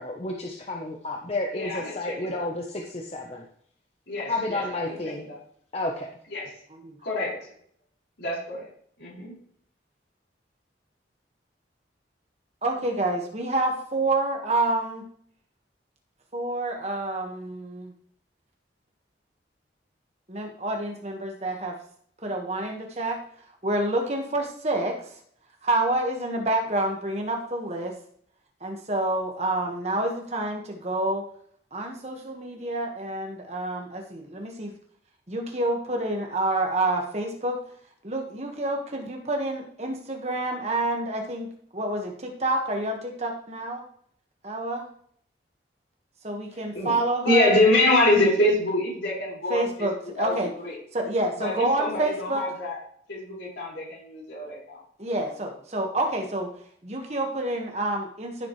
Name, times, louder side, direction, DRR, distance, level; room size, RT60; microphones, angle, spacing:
voice 1, 0.0-3.4 4.3-5.2 5.7-6.1, left 2 dB, 35° left, 1 dB, 0.9 m, -31 dB
voice 2, 1.5-2.5 4.1-5.4 6.3-6.5 7.0-7.5 8.2-8.7 9.0-9.3 46.5-47.0 47.2-49.9 50.2-50.7 51.4-52.8 53.1-54.8, left 1 dB, 75° left, -5 dB, 5.2 m, -25 dB
voice 3, 12.6-15.0 16.3-17.9 20.3-21.8 22.2-23.2 23.6-25.0 25.6-27.9 28.6-31.2 31.7-34.7 35.3-37.6 38.0-41.5 41.7-43.8 44.4-44.9 46.2-47.6 49.5-50.5 50.9-52.4 55.0-56.5 56.8-58.5, right 2 dB, 35° right, 2 dB, 1.6 m, -28 dB
15.0 x 7.3 x 3.2 m, 0.62 s
head